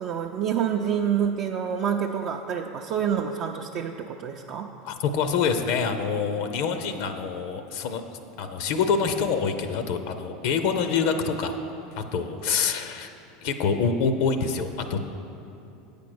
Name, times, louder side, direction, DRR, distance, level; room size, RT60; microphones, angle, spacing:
voice 1, 0.0-4.7, right 8 dB, 50° right, 2 dB, 0.4 m, -27 dB
voice 2, 4.8-8.0 8.4-11.6 12.0-13.1 13.4-15.0, left 5 dB, 65° left, 8 dB, 0.6 m, -26 dB
8.3 x 5.2 x 6.2 m, 2.8 s
hypercardioid pair, 90°, 0 cm